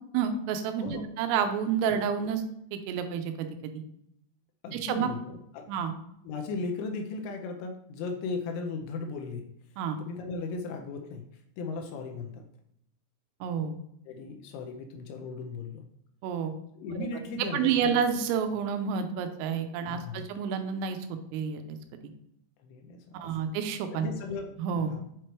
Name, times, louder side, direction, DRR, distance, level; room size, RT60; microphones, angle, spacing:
voice 1, 0.1-2.4 2.7-3.8 4.7-5.1 5.7-5.9 9.8-10.0 13.4-13.8 16.2-16.6 17.0-17.1 17.5-21.8 22.0-22.1 23.1-24.1 24.6-24.9, right 7 dB, 90° right, 7 dB, 3.3 m, -29 dB
voice 2, 4.6-5.7 6.3-9.5 10.0-11.2 11.6-12.4 14.1-15.8 16.8-18.0 19.8-20.2 22.6-23.2 23.9-24.5 24.9-25.0, left 4 dB, 80° left, 4 dB, 2.9 m, -36 dB
8.0 x 4.5 x 3.1 m, 0.77 s
omnidirectional pair, 5.8 m